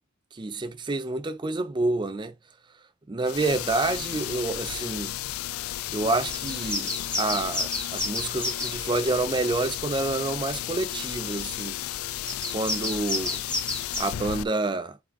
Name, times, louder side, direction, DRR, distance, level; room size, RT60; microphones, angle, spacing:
voice 1, 0.3-2.3 3.1-5.1 5.9-11.8 12.5-13.4 14.0-15.0, right 2 dB, 20° right, 0.4 m, -28 dB
sound 1, 3.2-14.4, left 13 dB, 85° left, 0.4 m, -33 dB
sound 2, 6.3-8.8 12.3-14.0, left 1 dB, 5° left, 2.5 m, -31 dB
8.3 x 3.6 x 3.6 m
head